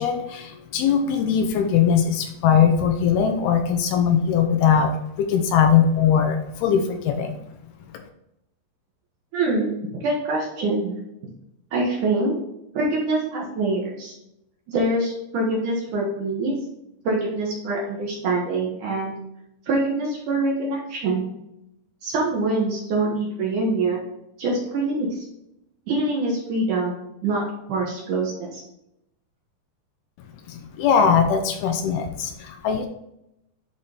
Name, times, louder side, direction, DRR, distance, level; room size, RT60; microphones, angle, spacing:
voice 1, 0.0-4.9 5.2-7.4 7.9-8.0 30.5-32.9, left 7 dB, 80° left, 5 dB, 2.5 m, -20 dB
voice 2, 9.3-11.0 11.7-12.4 12.7-14.1 14.7-16.5 17.0-19.1 19.7-21.2 22.0-24.1 24.4-25.2 25.9-27.4 27.7-28.6, right 2 dB, 65° right, -2 dB, 2.3 m, -24 dB
11.0 x 4.0 x 3.4 m, 0.83 s
omnidirectional pair, 4.8 m